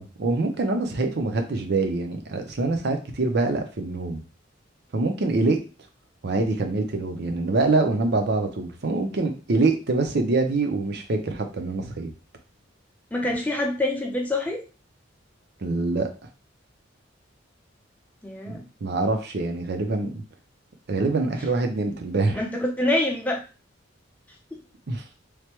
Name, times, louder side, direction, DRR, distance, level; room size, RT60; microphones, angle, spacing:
voice 1, 0.0-4.2 4.9-5.6 6.2-12.1 15.6-16.1 18.5-20.2 20.9-22.4 24.9-25.0, right 3 dB, 55° right, 5 dB, 0.6 m, -25 dB
voice 2, 13.1-14.6 18.2-18.6 22.3-23.4 24.5-24.6, left 1 dB, 10° left, 0 dB, 0.6 m, -26 dB
3.2 x 2.2 x 3.0 m, 0.33 s
head